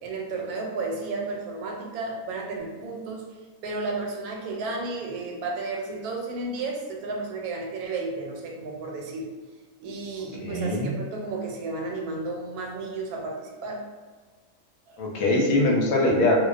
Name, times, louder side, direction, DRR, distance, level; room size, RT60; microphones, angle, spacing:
voice 1, 0.0-3.3 3.6-9.3 9.8-13.9 14.9-15.0, right 3 dB, 85° right, 0 dB, 1.1 m, -33 dB
voice 2, 10.4-10.9 15.0-16.4, left 1 dB, 75° left, -1 dB, 1.0 m, -22 dB
2.3 x 2.2 x 2.4 m, 1.4 s
omnidirectional pair, 1.5 m